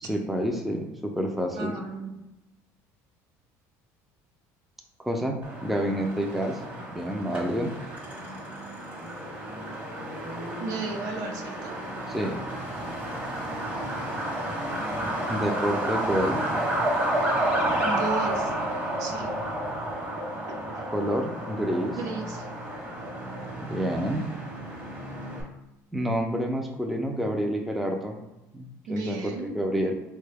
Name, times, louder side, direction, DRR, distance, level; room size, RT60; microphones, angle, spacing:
voice 1, 0.0-1.7 5.0-6.6 7.0-7.7 12.1-12.4 15.3-16.4 20.9-22.0 23.7-24.2 25.9-28.2 28.5-29.9, equal, ahead, 2 dB, 0.3 m, -28 dB
voice 2, 1.6-2.1 10.6-11.8 17.8-18.7 19.0-19.3 20.5-20.9 22.0-22.5 28.9-29.5, right 3 dB, 60° right, 3 dB, 0.7 m, -34 dB
Truck, 5.4-25.4, right 1 dB, 25° right, 0.9 m, -31 dB
3.8 x 2.2 x 3.3 m, 0.97 s
cardioid pair, 125°, 7 cm